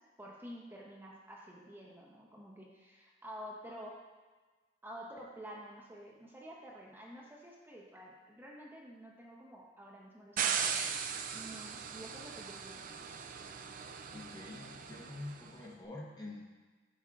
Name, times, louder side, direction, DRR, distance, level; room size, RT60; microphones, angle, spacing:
voice 1, 0.2-4.0 4.8-10.7 11.3-12.8, equal, 10° right, -3 dB, 0.7 m, -50 dB
sound 1, 10.4-15.5, right 7 dB, 50° right, 0.4 m, -38 dB
voice 2, 14.1-16.4, left 2 dB, 20° left, -2 dB, 0.8 m, -46 dB
8.3 x 5.5 x 2.4 m, 1.3 s
head